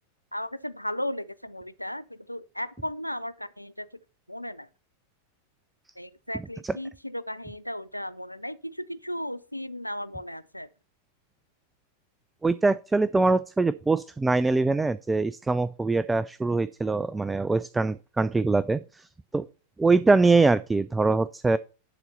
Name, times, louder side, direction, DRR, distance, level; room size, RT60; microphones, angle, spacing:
voice 1, 0.3-3.9 4.3-4.7 6.0-10.7, left 1 dB, 90° left, 0.3 m, -35 dB
voice 2, 12.4-19.5 19.8-21.6, right 3 dB, 10° right, 0.3 m, -23 dB
11.0 x 4.1 x 5.6 m
figure-of-eight pair, 90°, 0 cm